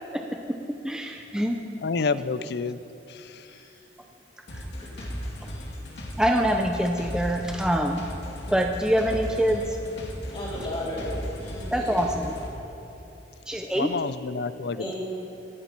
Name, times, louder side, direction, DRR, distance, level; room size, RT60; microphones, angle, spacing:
voice 1, 0.1-0.6 0.8-1.6 6.2-8.1 8.5-9.6 11.7-12.3 13.5-13.9 14.8-14.9, equal, 5° right, 2 dB, 0.6 m, -25 dB
voice 2, 1.8-2.8 13.8-14.9, left 4 dB, 65° left, 15 dB, 0.5 m, -28 dB
voice 3, 3.4-3.8 4.8-5.1 10.3-11.1 11.4-12.0 14.8-15.0, left 1 dB, 35° left, -8 dB, 3.9 m, -35 dB
sound 1, 4.5-12.5, equal, 85° left, 2.1 m, -36 dB
17.5 x 13.0 x 4.5 m, 3.0 s
head